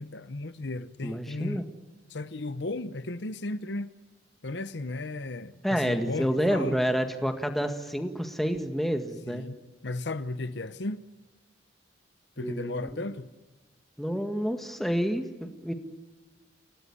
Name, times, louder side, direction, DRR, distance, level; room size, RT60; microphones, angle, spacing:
voice 1, 0.0-1.6 2.1-3.9 4.4-6.8 9.3-9.6 9.8-11.0 12.4-13.3, left 2 dB, 60° left, 0.9 m, -35 dB
voice 2, 1.0-1.6 5.6-9.5 12.4-13.0 14.0-15.7, equal, ahead, 1.8 m, -29 dB
29.0 x 18.0 x 9.9 m
head